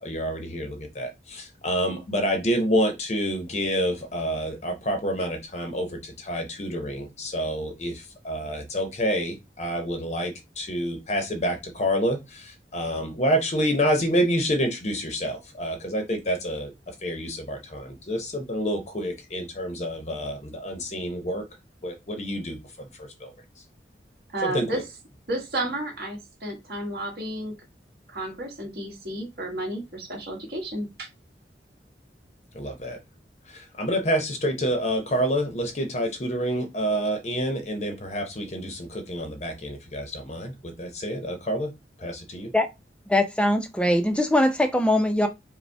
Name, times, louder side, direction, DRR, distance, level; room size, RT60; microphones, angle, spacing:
voice 1, 0.0-21.4 21.8-23.3 24.4-24.8 32.5-33.0 33.5-41.7 42.0-42.5, equal, 40° left, 0.7 m, -28 dB
voice 2, 24.3-24.8 25.3-27.5 28.1-31.1, right 1 dB, 55° right, 1.6 m, -32 dB
voice 3, 43.1-45.3, left 1 dB, 5° left, 0.5 m, -21 dB
5.1 x 2.2 x 3.3 m
head